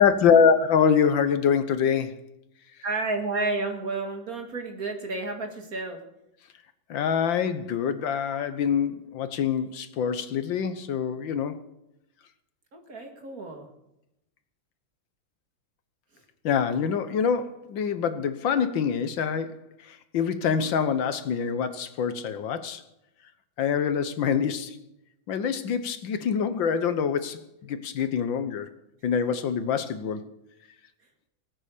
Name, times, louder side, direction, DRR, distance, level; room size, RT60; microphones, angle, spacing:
voice 1, 0.0-2.1 6.9-11.6 16.4-19.6 19.9-22.8 23.6-24.8 25.3-28.7 29.0-30.2, left 7 dB, 70° left, 11 dB, 1.7 m, -25 dB
voice 2, 2.8-6.0 12.7-13.7, right 3 dB, 45° right, 4 dB, 2.5 m, -31 dB
18.5 x 8.9 x 6.7 m, 0.86 s
omnidirectional pair, 2.2 m